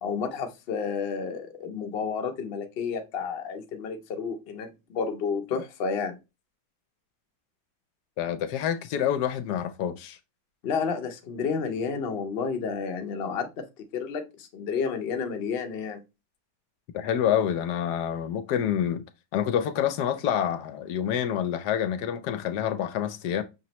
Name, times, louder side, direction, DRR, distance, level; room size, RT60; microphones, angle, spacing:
voice 1, 0.0-6.2 10.6-13.7 13.9-16.0, left 5 dB, 55° left, 0.7 m, -31 dB
voice 2, 8.2-10.2 16.9-19.0 19.3-23.4, left 9 dB, 75° left, 1.1 m, -27 dB
5.8 x 3.0 x 2.9 m
omnidirectional pair, 1.9 m